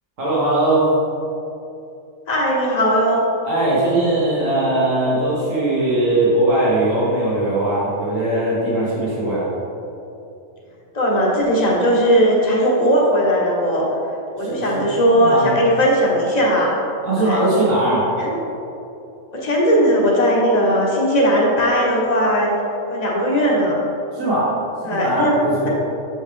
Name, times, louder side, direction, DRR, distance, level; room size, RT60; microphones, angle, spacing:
voice 1, 0.2-0.9 3.4-9.5 14.4-14.8 15.2-15.6 17.0-18.1 24.1-24.5 24.8-25.7, right 1 dB, 70° right, -9 dB, 1.8 m, -20 dB
voice 2, 2.3-3.2 10.9-13.9 14.4-16.8 17.2-17.4 18.2-18.4 19.3-22.5 22.9-23.8 24.8-25.4, equal, 35° left, -3 dB, 1.1 m, -18 dB
7.1 x 5.4 x 3.4 m, 2.9 s
omnidirectional pair, 1.4 m